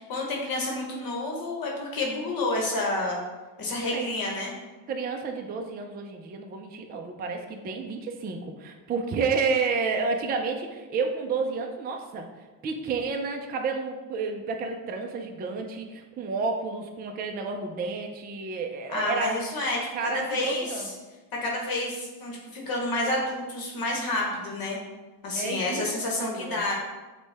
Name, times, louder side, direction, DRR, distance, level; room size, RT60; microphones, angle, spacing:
voice 1, 0.0-3.2 3.6-4.5 18.9-20.8 21.3-24.8 25.2-26.7, left 2 dB, 45° left, -1 dB, 1.0 m, -29 dB
voice 2, 4.9-12.3 12.6-19.4 19.9-21.0 25.3-25.9 26.2-26.6, right 4 dB, 25° right, 4 dB, 0.3 m, -30 dB
6.0 x 2.3 x 3.3 m, 1.2 s
cardioid pair, 115°, 48 cm